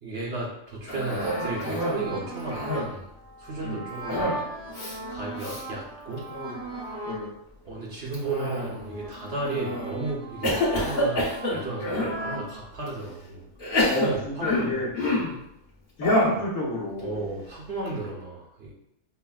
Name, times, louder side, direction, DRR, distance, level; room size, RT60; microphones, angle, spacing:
voice 1, 0.0-2.9 3.4-4.4 5.1-6.2 7.6-13.4 13.9-14.8 17.0-18.7, right 2 dB, 55° right, -3 dB, 0.9 m, -34 dB
Cough, 0.9-2.1 2.4-3.0 4.1-4.4 4.7-4.9 5.4-5.6 6.2-6.6 8.1-8.9 9.5-9.9 10.4-12.2 12.9-13.0 13.6-15.4 16.0-16.4, left 1 dB, 45° left, 1.2 m, -28 dB
sound 1, 1.1-7.3 7.7-12.5, right 1 dB, 5° left, 0.5 m, -38 dB
voice 2, 13.9-15.2 16.0-17.3, left 2 dB, 70° left, -3 dB, 1.2 m, -28 dB
5.6 x 2.1 x 2.3 m, 0.80 s
omnidirectional pair, 1.4 m